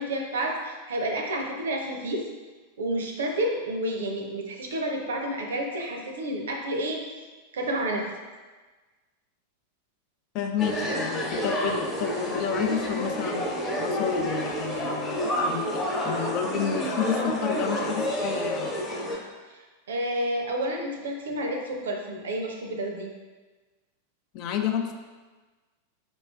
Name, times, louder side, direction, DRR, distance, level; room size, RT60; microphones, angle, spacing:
voice 1, 0.0-2.2 2.8-7.0 7.5-8.1 19.5-19.6 19.9-23.1, right 1 dB, 65° right, 2 dB, 0.5 m, -30 dB
voice 2, 10.3-13.5 13.8-18.8 24.3-24.9, left 8 dB, 40° left, 5 dB, 0.4 m, -30 dB
sound 1, 10.6-19.2, equal, 15° left, 1.0 m, -29 dB
5.1 x 3.1 x 2.3 m, 1.3 s
figure-of-eight pair, 90°, 0 cm